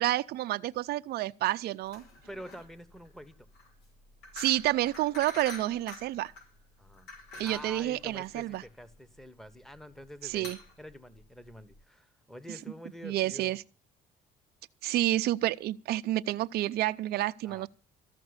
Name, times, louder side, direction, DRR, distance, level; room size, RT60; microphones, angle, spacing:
voice 1, 0.0-2.0 4.3-6.3 7.4-8.6 10.2-10.6 13.0-13.6 14.8-17.7, right 15 dB, 70° right, 0.6 m, -29 dB
sound 1, 1.8-11.8, left 2 dB, 80° left, 5.5 m, -48 dB
voice 2, 2.3-3.4 6.8-7.1 7.4-10.5 10.8-13.6 17.4-17.7, equal, ahead, 1.1 m, -47 dB
14.0 x 6.0 x 9.7 m
cardioid pair, 110°, 17 cm